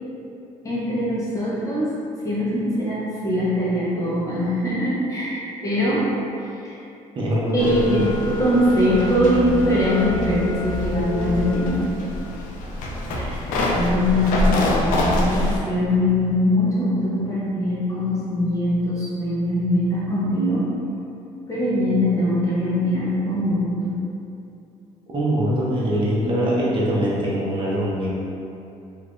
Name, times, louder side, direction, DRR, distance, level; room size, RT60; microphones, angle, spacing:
voice 1, 0.6-1.9 2.2-6.1 6.4-6.7 7.5-11.9 13.1-20.6 21.5-24.0, left 1 dB, 25° left, -8 dB, 1.1 m, -22 dB
voice 2, 7.2-8.0 25.1-28.1, equal, 40° right, -6 dB, 0.8 m, -22 dB
sound 1, 7.6-15.6, left 1 dB, 85° left, 0.5 m, -25 dB
3.3 x 3.2 x 2.5 m, 2.7 s
cardioid pair, 115°, 13 cm